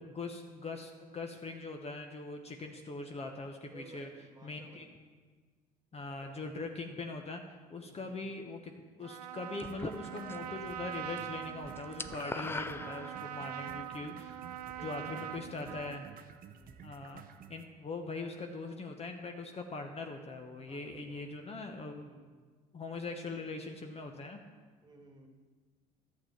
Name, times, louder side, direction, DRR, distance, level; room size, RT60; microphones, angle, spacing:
voice 1, 0.0-4.1 4.4-4.9 5.9-7.4 7.7-14.4 14.8-16.1 16.8-17.2 17.5-22.1 22.7-24.4, left 3 dB, 30° left, 4 dB, 1.0 m, -41 dB
voice 2, 2.6-3.1 3.6-4.9 5.9-6.7 7.7-8.3 14.7-16.2 16.4-16.9 20.7-21.4 21.9-22.4 23.2-23.5 24.8-25.3, right 3 dB, 20° right, 2 dB, 1.7 m, -58 dB
Trumpet, 9.0-16.2, right 11 dB, 90° right, 0.4 m, -43 dB
sound 1, 9.6-10.6 10.9-11.2 11.5-13.6, left 3 dB, 10° left, 0.4 m, -41 dB
sound 2, 9.7-17.7, right 7 dB, 45° right, 0.7 m, -53 dB
11.5 x 7.5 x 4.5 m, 1.5 s
hypercardioid pair, 65°, 20 cm